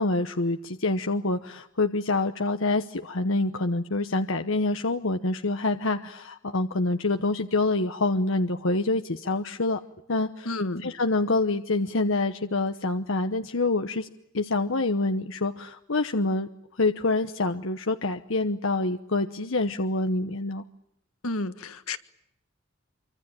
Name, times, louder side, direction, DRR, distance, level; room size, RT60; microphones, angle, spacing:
voice 1, 0.0-9.8 10.1-10.5 10.8-14.1 14.3-16.5 16.8-20.6, left 2 dB, 65° left, 1.0 m, -26 dB
voice 2, 10.4-10.9 21.2-22.0, left 2 dB, 85° left, 1.6 m, -31 dB
26.0 x 25.0 x 8.9 m
head